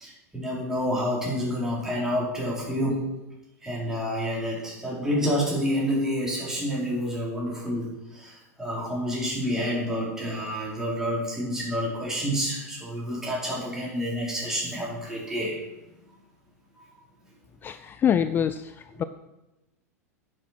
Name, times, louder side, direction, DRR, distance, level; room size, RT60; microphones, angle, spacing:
voice 1, 0.0-3.1 3.6-15.6 18.9-19.1, equal, 5° right, -5 dB, 4.9 m, -29 dB
voice 2, 17.6-19.0, left 8 dB, 25° left, 12 dB, 0.4 m, -25 dB
10.0 x 7.7 x 6.1 m, 0.98 s
figure-of-eight pair, 90°, 9 cm